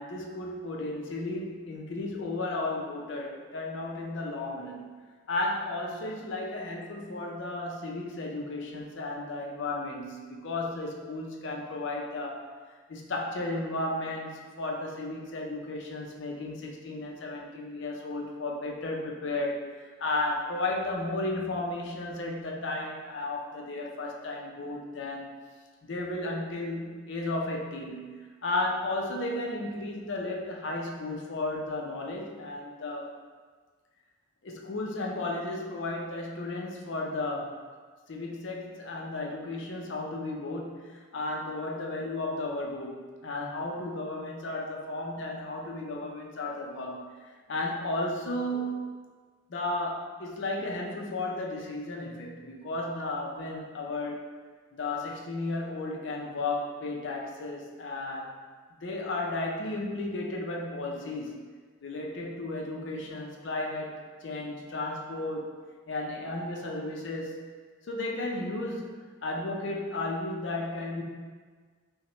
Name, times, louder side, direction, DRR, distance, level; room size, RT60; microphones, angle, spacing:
voice 1, 0.0-4.9 5.3-12.5 12.9-25.3 25.8-33.1 34.4-37.6 38.1-47.0 47.5-48.9 49.5-54.3 54.7-58.5 58.8-61.4 61.8-65.5 65.9-67.4 67.8-71.0, left 2 dB, 60° left, 0 dB, 0.5 m, -34 dB
5.5 x 2.1 x 3.0 m, 1.5 s
head